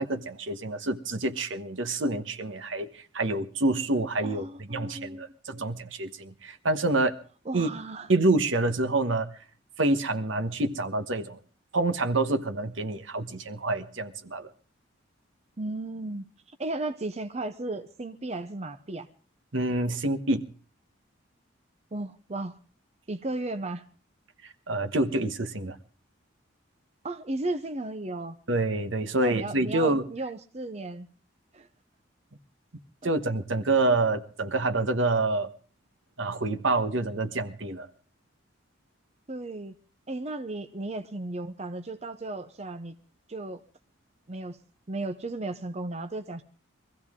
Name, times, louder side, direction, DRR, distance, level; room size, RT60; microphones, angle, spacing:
voice 1, 0.0-7.2 7.5-7.7 8.1-9.3 9.8-11.4 11.7-14.5 19.5-20.5 24.7-25.8 28.5-30.0 33.0-35.5 36.2-37.9, right 2 dB, 70° right, 10 dB, 1.2 m, -27 dB
voice 2, 4.2-5.2 7.5-8.1 15.6-19.1 21.9-22.6 23.1-23.8 27.0-28.4 29.1-31.1 31.5-31.7 33.0-33.1 39.3-39.7 40.1-43.0 43.3-43.6 44.3-44.6 44.9-46.4, right 2 dB, 35° right, 9 dB, 0.7 m, -35 dB
23.0 x 15.0 x 3.7 m, 0.40 s
head